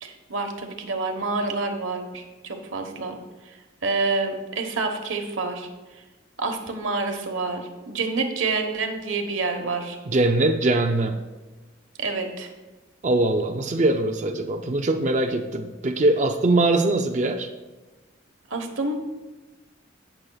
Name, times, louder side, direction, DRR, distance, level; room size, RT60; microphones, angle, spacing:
voice 1, 0.0-3.2 3.5-3.6 3.8-5.7 6.4-10.0 12.0-12.5 18.5-18.9, right 3 dB, 90° right, 5 dB, 1.2 m, -28 dB
voice 2, 10.1-11.2 13.0-17.5, right 2 dB, 35° right, 4 dB, 0.4 m, -22 dB
16.0 x 6.4 x 2.3 m, 1.2 s
head